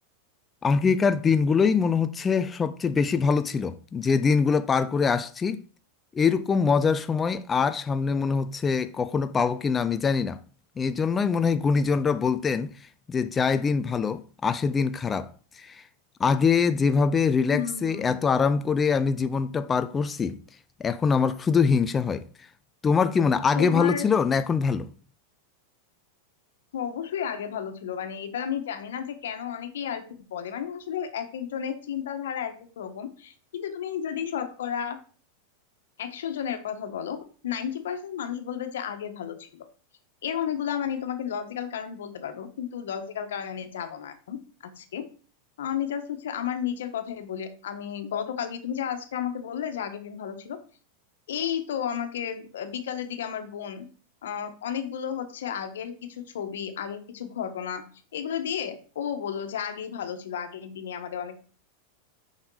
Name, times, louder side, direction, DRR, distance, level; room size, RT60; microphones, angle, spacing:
voice 1, 0.6-5.6 6.1-10.4 10.8-12.7 13.1-15.8 16.2-20.4 20.8-22.3 22.8-24.9, left 5 dB, 15° left, 0.3 m, -23 dB
voice 2, 17.5-18.2 23.5-24.1 26.7-30.0 30.3-35.0 36.0-37.2 37.4-39.7 40.2-44.4 44.6-45.1 45.6-50.6 51.3-53.9 54.2-57.8 58.1-61.4, left 8 dB, 90° left, 1.3 m, -32 dB
6.4 x 5.2 x 4.8 m
supercardioid pair, 150°, 0 cm